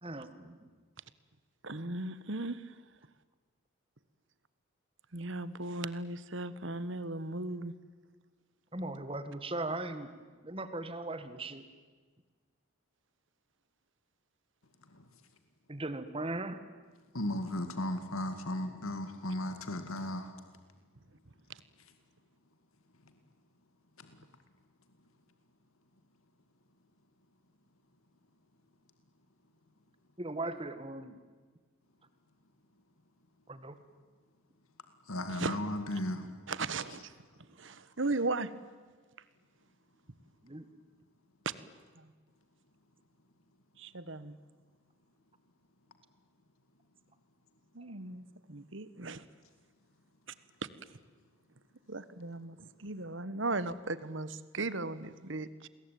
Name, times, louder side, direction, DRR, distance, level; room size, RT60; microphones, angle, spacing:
voice 1, 0.0-0.7 8.7-10.1 10.4-11.6 15.7-16.6 30.2-31.2 33.5-33.8 40.4-40.6, right 2 dB, 25° right, 11 dB, 1.8 m, -38 dB
voice 2, 1.6-2.8 5.1-7.7 21.5-21.6 35.3-35.6 35.9-36.0 36.5-37.1 37.5-38.5 41.4-41.5 41.9-42.1 43.8-44.4 47.7-49.2 50.6-50.7 51.9-55.7, right 3 dB, 60° right, 15 dB, 1.3 m, -37 dB
voice 3, 17.1-20.3 24.0-24.2 35.1-36.3 36.8-37.0, left 1 dB, 80° left, 8 dB, 2.2 m, -36 dB
29.5 x 22.0 x 9.3 m, 1.4 s
head